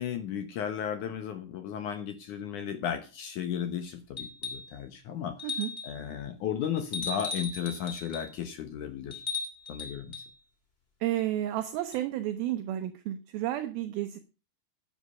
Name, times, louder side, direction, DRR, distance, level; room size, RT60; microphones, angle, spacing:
voice 1, 0.0-5.6 5.8-9.2 9.7-10.2, left 8 dB, 70° left, 8 dB, 1.9 m, -34 dB
sound 1, 4.2-4.7 5.4-6.0 6.9-8.3 9.1-10.3 11.9-12.0, left 4 dB, 20° left, 1.9 m, -37 dB
voice 2, 11.0-14.2, right 13 dB, 75° right, 8 dB, 2.4 m, -31 dB
11.5 x 8.2 x 5.5 m, 0.33 s
omnidirectional pair, 4.8 m